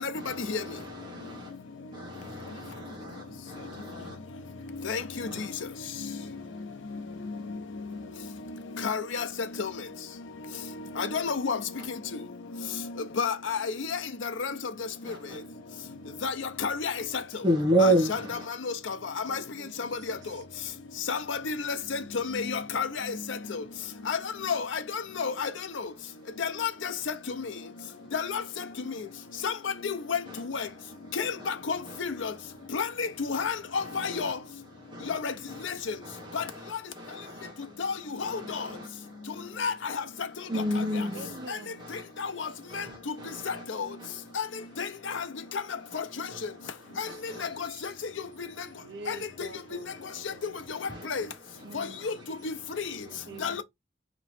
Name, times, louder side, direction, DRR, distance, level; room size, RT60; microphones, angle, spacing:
voice 1, 0.1-1.6 1.9-5.5 6.1-7.4 7.9-8.1 11.8-11.9 15.0-15.5 17.4-18.5 26.3-26.4 28.0-28.1 29.2-29.4 30.3-30.4 30.9-31.5 31.9-32.0 32.6-32.7 33.8-34.4 34.8-35.2 35.5-37.8 38.2-39.7 40.5-44.3 44.9-45.5 45.9-47.7 48.7-49.1 49.9-50.4 50.7-52.3 52.6-52.7 53.0-53.6, right 1 dB, 25° right, 0.9 m, -34 dB
voice 2, 8.8-9.2 9.6-9.7 11.0-11.6 13.2-13.6 14.4-14.5 16.2-16.3 16.6-16.9 17.8-18.2 18.9-19.0 19.3-19.4 21.1-22.9 24.1-24.2 24.4-24.6 25.2-25.5 26.4-26.9 28.1-28.4 29.4-29.5 29.8-30.2 30.5-30.7 31.2-31.3 31.7-32.3 32.7-34.3 35.1-35.3 35.7-35.8 36.3-36.4 37.8-37.9 38.2-38.3 39.6-39.7 44.4-44.5 44.8-44.9 45.9-46.0 47.0-47.1 49.1-49.2 51.1-51.2 51.7-52.1 52.4-52.5 53.4-53.6, left 5 dB, 90° left, 0.6 m, -29 dB
voice 3, 19.3-20.2 27.9-28.1 41.1-41.8 46.9-47.1 47.4-47.8 48.8-50.5 51.6-52.2 52.8-53.6, right 3 dB, 65° right, 0.6 m, -47 dB
3.3 x 3.0 x 4.0 m
head